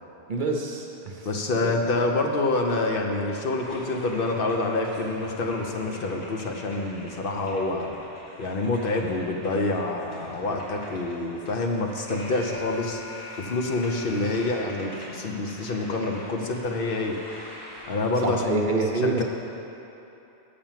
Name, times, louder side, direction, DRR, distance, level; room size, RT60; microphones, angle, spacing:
voice 1, 0.3-1.3 1.6-1.7 18.2-19.2, right 3 dB, 50° right, 1 dB, 0.8 m, -27 dB
voice 2, 1.3-7.9 8.4-13.0 13.4-17.2 17.9-18.6 18.9-19.2, left 2 dB, 60° left, 2 dB, 0.9 m, -27 dB
sound 1, 3.5-18.6, equal, 80° left, 1.9 m, -45 dB
Alarm, 12.1-15.0, left 4 dB, 5° left, 0.7 m, -42 dB
6.8 x 5.9 x 7.3 m, 3.0 s
omnidirectional pair, 1.1 m